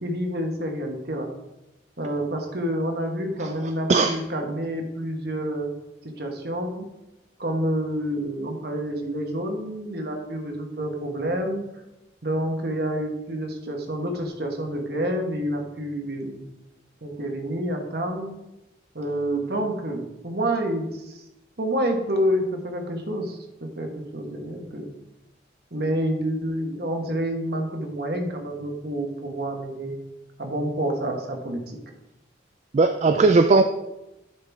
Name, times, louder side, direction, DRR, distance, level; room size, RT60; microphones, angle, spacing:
voice 1, 0.0-1.3 2.0-5.7 6.0-6.8 7.4-11.6 12.2-16.4 17.0-18.4 18.9-21.2 21.6-24.9 25.7-30.0 30.4-31.8 33.0-33.2, right 1 dB, 55° right, 3 dB, 1.4 m, -28 dB
voice 2, 3.4-4.2 32.7-33.6, right 3 dB, 35° right, 7 dB, 0.3 m, -19 dB
11.5 x 5.3 x 3.5 m, 0.93 s
head